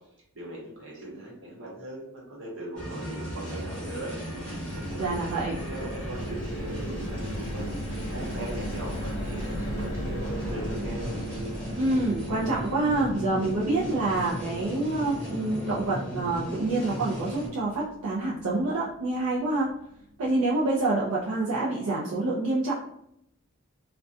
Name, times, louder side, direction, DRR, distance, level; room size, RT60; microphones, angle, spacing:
voice 1, 0.3-4.1 4.7-7.7 8.1-11.1, right 1 dB, 55° right, -4 dB, 1.0 m, -40 dB
sound 1, 2.8-17.5, equal, 5° left, 0.8 m, -36 dB
sound 2, 3.4-19.6 20.0-20.1 20.4-20.6, equal, 55° left, 0.9 m, -38 dB
voice 2, 5.0-5.6 11.7-19.7 20.2-22.7, right 2 dB, 80° right, -5 dB, 0.5 m, -27 dB
2.3 x 2.2 x 2.5 m, 0.76 s
head